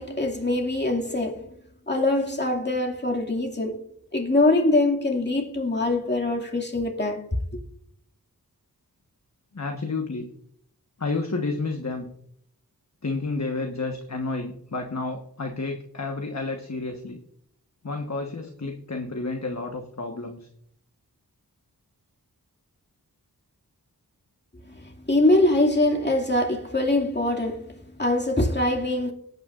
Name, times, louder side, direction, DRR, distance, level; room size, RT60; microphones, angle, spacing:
voice 1, 0.0-1.5 1.9-3.8 4.1-7.2 24.7-29.1, left 2 dB, 30° left, 2.3 m, -23 dB
voice 2, 9.5-10.3 11.0-12.1 13.0-17.2 17.8-20.5, left 3 dB, 45° left, 1.3 m, -30 dB
18.5 x 9.3 x 2.5 m
wide cardioid pair, 45°, 38 cm